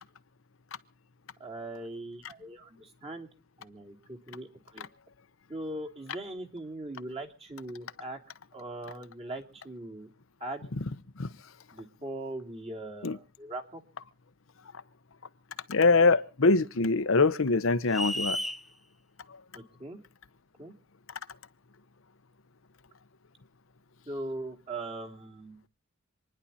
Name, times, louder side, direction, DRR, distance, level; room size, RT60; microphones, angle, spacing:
voice 1, 1.4-3.3 3.6-4.9 5.5-8.2 8.5-10.1 10.4-10.7 11.7-13.8 19.5-20.0 20.6-20.7 24.1-25.6, right 2 dB, 30° right, 2.7 m, -40 dB
voice 2, 15.7-18.4, left 3 dB, 65° left, 0.9 m, -23 dB
sound 1, 17.9-18.6, equal, ahead, 0.8 m, -32 dB
27.0 x 10.5 x 4.2 m
head